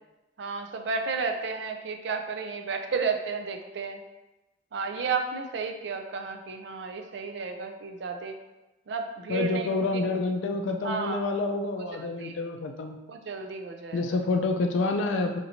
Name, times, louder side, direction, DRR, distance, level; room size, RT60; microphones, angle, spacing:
voice 1, 0.4-4.0 4.7-8.4 8.9-10.0 10.8-11.9 12.2-12.4 13.1-14.2, right 4 dB, 65° right, 4 dB, 0.4 m, -33 dB
voice 2, 9.3-13.0 13.9-15.4, left 3 dB, 80° left, 4 dB, 0.3 m, -28 dB
4.4 x 2.7 x 2.8 m, 1.0 s
head